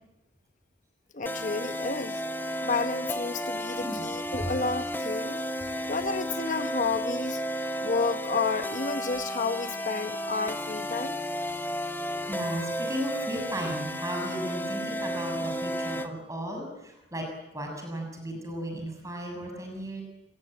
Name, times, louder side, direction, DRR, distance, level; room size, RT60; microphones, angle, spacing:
voice 1, 1.1-2.2 2.6-5.4 5.9-7.4 7.8-11.2, left 4 dB, 45° left, 10 dB, 1.1 m, -31 dB
sound 1, 1.3-16.1, equal, 10° left, 1.2 m, -33 dB
voice 2, 12.0-20.0, equal, 20° right, 2 dB, 7.0 m, -35 dB
26.5 x 19.5 x 9.0 m, 0.91 s
head